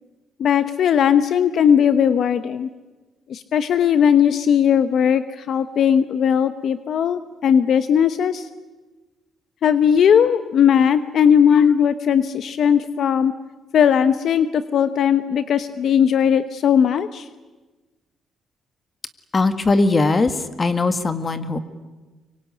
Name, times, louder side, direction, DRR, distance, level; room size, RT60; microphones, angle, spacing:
voice 1, 0.4-2.7 3.3-8.5 9.6-13.3 13.7-17.3, left 8 dB, 65° left, 11 dB, 1.0 m, -18 dB
voice 2, 19.3-21.6, left 3 dB, 30° left, 10 dB, 1.9 m, -20 dB
24.5 x 24.0 x 9.8 m, 1.2 s
cardioid pair, 90°, 0 cm